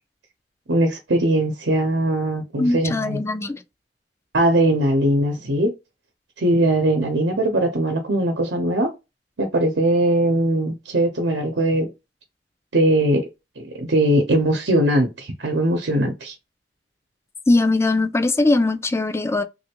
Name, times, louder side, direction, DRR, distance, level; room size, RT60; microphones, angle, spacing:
voice 1, 0.7-3.2 4.3-5.7 6.4-8.9 9.4-11.9 12.7-13.2 13.6-16.3, right 1 dB, 90° right, 0.8 m, -20 dB
voice 2, 2.6-3.6 17.5-19.4, left 2 dB, 15° left, 0.3 m, -20 dB
3.3 x 2.5 x 2.9 m
head